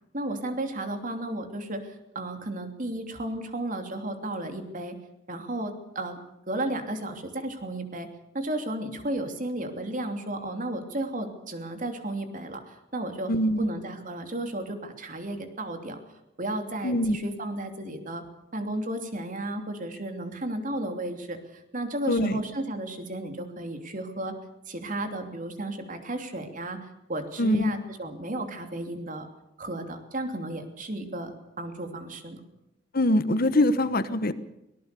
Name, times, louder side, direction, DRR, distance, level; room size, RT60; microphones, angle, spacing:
voice 1, 0.1-5.0 5.3-6.2 6.5-8.1 8.3-13.3 13.6-16.0 16.4-18.2 18.5-21.4 21.7-24.3 24.7-26.8 27.1-29.3 29.6-32.4, right 1 dB, 45° right, 6 dB, 3.1 m, -33 dB
voice 2, 13.3-13.7 16.8-17.2 22.1-22.4 27.4-27.7 32.9-34.3, left 1 dB, 50° left, 13 dB, 1.2 m, -23 dB
23.5 x 19.0 x 7.0 m, 0.88 s
head